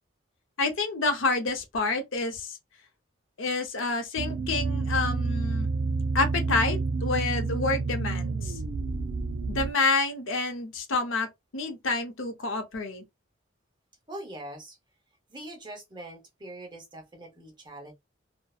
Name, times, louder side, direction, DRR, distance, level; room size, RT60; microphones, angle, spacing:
voice 1, 0.6-2.6 3.4-5.7 6.1-8.6 9.5-11.3 11.5-13.0, left 3 dB, 85° left, 0.7 m, -28 dB
sound 1, 4.2-9.7, right 3 dB, 60° right, 0.3 m, -29 dB
voice 2, 14.1-14.8 15.3-17.9, right 1 dB, 25° right, 0.8 m, -42 dB
2.6 x 2.1 x 2.3 m
head